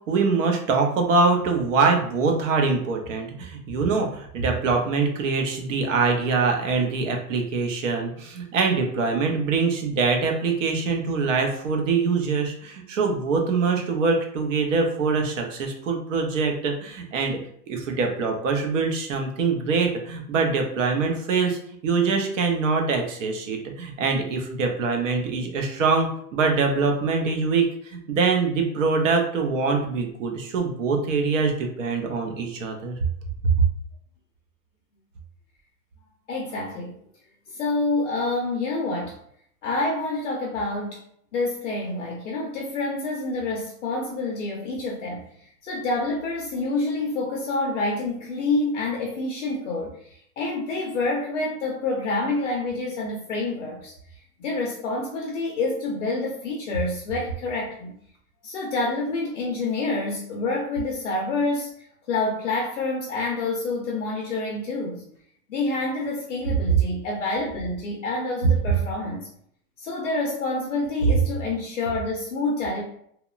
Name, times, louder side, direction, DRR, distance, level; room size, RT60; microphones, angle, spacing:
voice 1, 0.1-17.4 17.7-32.9, right 4 dB, 55° right, 3 dB, 0.6 m, -24 dB
voice 2, 36.3-37.0 37.5-39.2 39.6-41.0 41.3-45.2 45.6-53.9 54.4-57.9 58.4-61.7 62.1-65.0 65.5-69.3 69.8-72.8, left 2 dB, 50° left, -1 dB, 0.5 m, -27 dB
2.9 x 2.1 x 2.3 m, 0.67 s
supercardioid pair, 180°, 48 cm